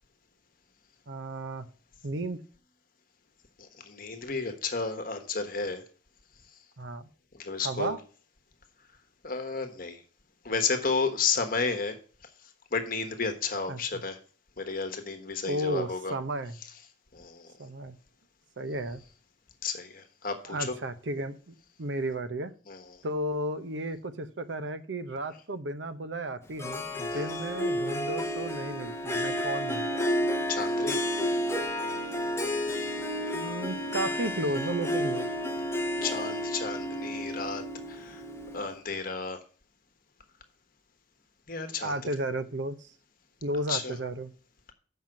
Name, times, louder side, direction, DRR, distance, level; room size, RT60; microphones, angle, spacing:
voice 1, 1.1-1.7 2.0-2.4 6.8-7.1 7.6-8.0 13.7-13.8 15.5-16.6 17.6-18.0 18.6-19.0 20.5-22.5 23.0-29.9 33.3-35.3 41.8-42.9 43.4-44.3, right 1 dB, 70° right, 11 dB, 0.8 m, -33 dB
voice 2, 3.6-5.8 7.3-7.9 9.2-10.0 10.4-12.0 12.2-14.2 14.6-16.2 16.6-16.7 17.1-17.5 19.6-20.7 22.7-23.0 27.1-27.3 30.5-31.0 36.0-38.2 38.5-39.4 41.5-41.9 43.7-43.9, left 4 dB, 50° left, 6 dB, 1.2 m, -32 dB
Harp, 26.6-38.8, equal, 15° left, 0.8 m, -31 dB
7.4 x 5.6 x 7.6 m, 0.41 s
head